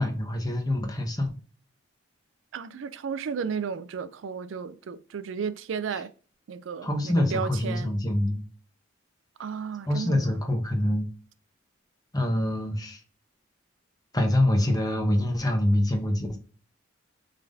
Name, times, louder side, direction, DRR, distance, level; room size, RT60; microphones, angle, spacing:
voice 1, 0.0-1.3 6.8-8.4 9.9-11.1 12.1-13.0 14.1-16.4, left 1 dB, 20° left, 0.9 m, -25 dB
voice 2, 2.5-6.1 6.5-7.9 9.4-10.4, right 6 dB, 65° right, 0.4 m, -33 dB
5.6 x 3.5 x 2.6 m
head